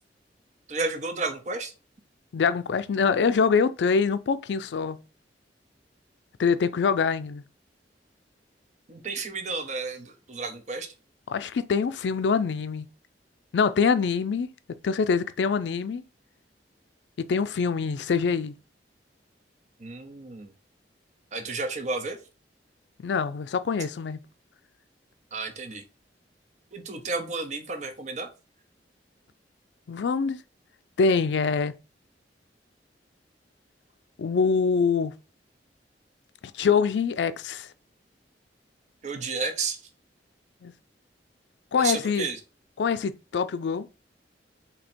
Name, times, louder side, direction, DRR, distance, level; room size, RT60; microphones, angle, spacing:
voice 1, 0.7-1.7 8.9-10.9 19.8-20.5 21.3-22.2 25.3-25.8 26.7-28.3 39.0-39.8 41.8-42.4, right 3 dB, 40° right, 0.7 m, -32 dB
voice 2, 2.3-5.0 6.4-7.4 11.3-12.9 13.5-14.5 14.8-16.0 17.2-18.6 23.0-24.2 29.9-30.4 31.0-31.7 34.2-35.1 36.5-37.7 40.6-40.7 41.7-42.3 42.8-43.9, left 5 dB, 75° left, 0.4 m, -24 dB
4.3 x 2.8 x 4.3 m
head